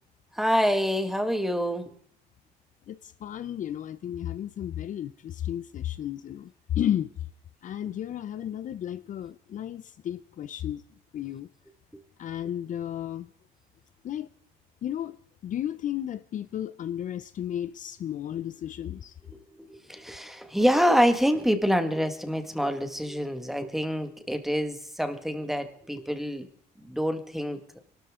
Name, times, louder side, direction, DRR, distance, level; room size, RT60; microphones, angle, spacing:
voice 1, 0.3-1.9 7.9-8.0 19.3-19.4 19.7-26.5 26.8-27.6, equal, ahead, 1.8 m, -26 dB
voice 2, 2.9-6.5 6.8-7.1 7.6-10.8 11.1-11.5 12.2-13.3 14.0-14.3 14.8-15.2 15.4-19.1, left 10 dB, 50° left, 0.6 m, -33 dB
24.0 x 13.0 x 3.8 m
cardioid pair, 110°, 17 cm